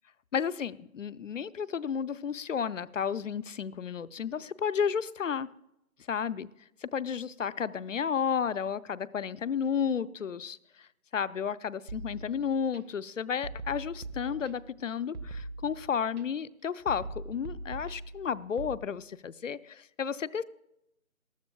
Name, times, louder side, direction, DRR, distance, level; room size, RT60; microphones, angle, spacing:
voice 1, 0.3-5.5 6.1-6.5 6.8-20.4, left 7 dB, 60° left, 16 dB, 0.6 m, -32 dB
sound 1, 11.9-12.8 13.4-14.8 15.1-16.2 16.9-18.7, right 2 dB, 80° right, 1.5 m, -42 dB
20.0 x 13.5 x 2.3 m, 0.86 s
hypercardioid pair, 175°, 43 cm